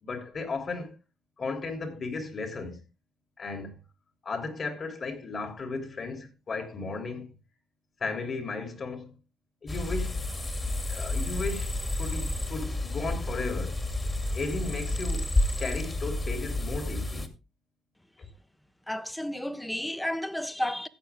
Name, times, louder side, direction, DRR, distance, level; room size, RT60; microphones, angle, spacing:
voice 1, 0.0-0.9 1.4-2.8 3.4-3.8 4.2-7.4 8.0-9.1 9.6-10.2 10.9-13.8 14.3-15.3 15.6-17.3 18.2-18.3, left 3 dB, 45° left, 3.4 m, -35 dB
sound 1, 9.7-17.3, left 1 dB, 20° left, 2.4 m, -30 dB
voice 2, 18.9-20.9, left 1 dB, 5° left, 1.1 m, -32 dB
14.5 x 8.9 x 3.6 m
cardioid pair, 90°, 0 cm